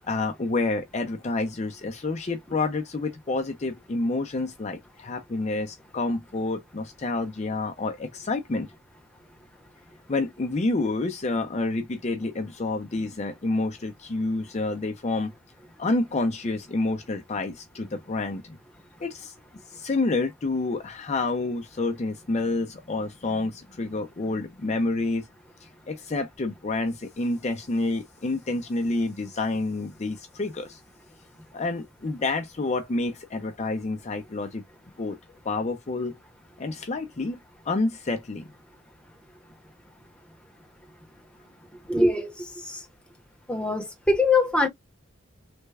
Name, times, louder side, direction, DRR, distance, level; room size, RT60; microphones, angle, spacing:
voice 1, 0.1-8.7 10.1-15.3 15.8-18.6 19.0-19.3 19.7-25.3 25.9-30.8 31.5-34.6 35.0-35.2 35.4-36.1 36.6-37.4 37.7-38.5, left 2 dB, 35° left, 0.5 m, -28 dB
voice 2, 41.8-42.8 43.5-44.7, left 2 dB, 5° left, 0.8 m, -23 dB
3.3 x 2.1 x 3.3 m
head